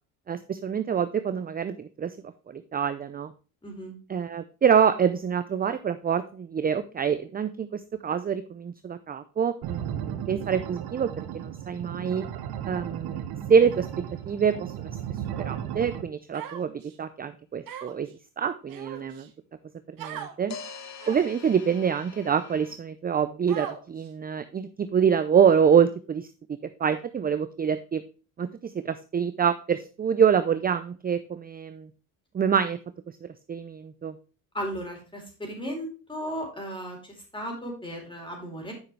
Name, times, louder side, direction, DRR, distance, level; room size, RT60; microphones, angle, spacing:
voice 1, 0.3-2.2 2.5-3.3 4.1-12.2 12.7-13.9 14.3-14.9 15.4-18.1 18.4-19.3 20.0-20.6 21.1-26.3 26.8-28.0 28.4-31.9 32.3-32.8 33.2-34.2, right 7 dB, 25° right, 11 dB, 0.5 m, -26 dB
voice 2, 3.6-3.9 34.5-38.7, equal, 15° left, 1 dB, 4.0 m, -35 dB
sound 1, 9.6-16.0, right 10 dB, 85° right, 1.2 m, -35 dB
sound 2, 13.7-13.8 20.5-22.8, left 6 dB, 45° left, 1.4 m, -43 dB
Human voice, 16.3-16.9 17.7-18.1 18.7-19.3 20.0-20.3 21.0-21.4 22.1-22.2 23.5-24.1, right 9 dB, 65° right, 1.7 m, -39 dB
9.6 x 5.8 x 3.2 m, 0.36 s
cardioid pair, 105°, 37 cm